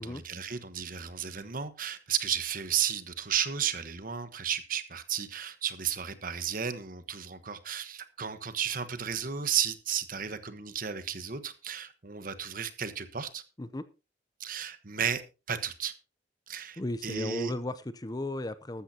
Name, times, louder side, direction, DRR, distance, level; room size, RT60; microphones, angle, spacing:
voice 1, 0.0-13.4 14.4-15.2 15.5-15.9 16.5-17.5, right 8 dB, 50° right, 1.2 m, -33 dB
voice 2, 16.8-18.8, left 1 dB, 20° left, 0.6 m, -35 dB
14.5 x 13.0 x 2.8 m
head